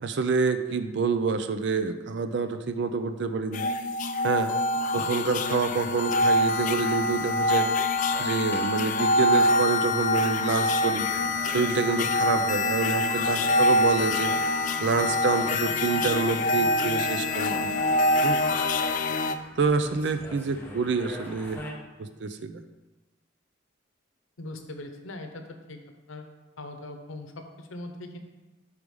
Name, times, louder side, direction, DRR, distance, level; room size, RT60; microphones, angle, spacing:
voice 1, 0.0-3.7 4.2-4.5 4.9-7.7 8.2-11.0 11.5-14.3 14.8-18.0 18.2-18.4 19.6-21.6 22.0-22.6, right 4 dB, 60° right, 9 dB, 0.4 m, -27 dB
sound 1, 3.5-19.4, left 2 dB, 40° left, 0.3 m, -25 dB
sound 2, 5.4-21.7, left 1 dB, 10° left, 0.9 m, -46 dB
voice 2, 24.4-25.8 26.1-28.2, left 2 dB, 85° left, 5 dB, 0.8 m, -41 dB
4.9 x 4.7 x 5.3 m, 1.1 s
head